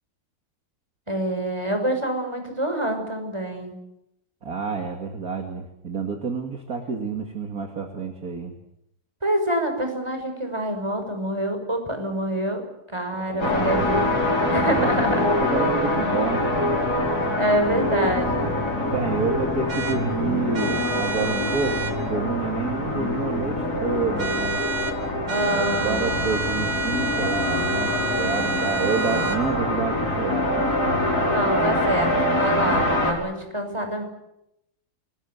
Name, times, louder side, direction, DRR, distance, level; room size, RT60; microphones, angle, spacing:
voice 1, 1.1-3.8 9.2-12.6 12.9-14.2 14.5-15.3 17.4-18.5 25.3-26.1 31.2-34.1, right 1 dB, 10° right, 5 dB, 5.9 m, -26 dB
voice 2, 4.4-8.5 13.1-13.8 14.4-16.5 18.8-24.6 25.5-30.6 31.8-32.2, right 4 dB, 40° right, 4 dB, 2.7 m, -29 dB
sound 1, 13.4-33.1, left 1 dB, 40° left, 6.0 m, -24 dB
sound 2, 19.7-20.0 20.5-22.0 24.2-25.0 25.3-29.4, right 3 dB, 85° right, 3.4 m, -29 dB
28.0 x 21.0 x 7.9 m, 0.83 s
omnidirectional pair, 2.4 m